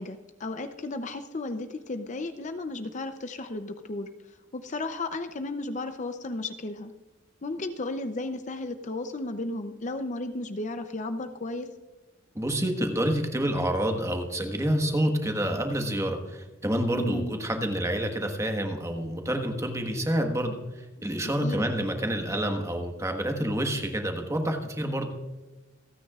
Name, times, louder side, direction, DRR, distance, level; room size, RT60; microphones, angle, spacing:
voice 1, 0.0-4.1 4.5-6.9 7.4-11.7 16.9-17.3 21.4-21.6, left 2 dB, 40° left, 8 dB, 0.6 m, -34 dB
voice 2, 12.3-25.1, right 1 dB, 15° right, 4 dB, 1.4 m, -28 dB
27.5 x 9.5 x 2.4 m, 1.2 s
head